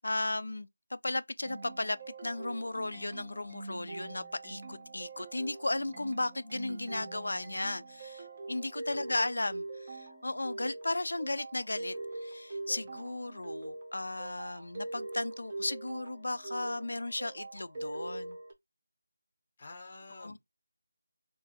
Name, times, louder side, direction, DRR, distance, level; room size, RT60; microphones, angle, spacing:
voice 1, 0.0-12.0 12.2-18.4 20.2-20.4, left 2 dB, 70° left, 0.4 m, -35 dB
sound 1, 1.4-18.5, right 2 dB, 25° right, 0.6 m, -43 dB
voice 2, 8.9-9.2 19.6-20.4, left 3 dB, 25° left, 0.6 m, -49 dB
3.8 x 2.4 x 2.5 m
figure-of-eight pair, 175°, 0 cm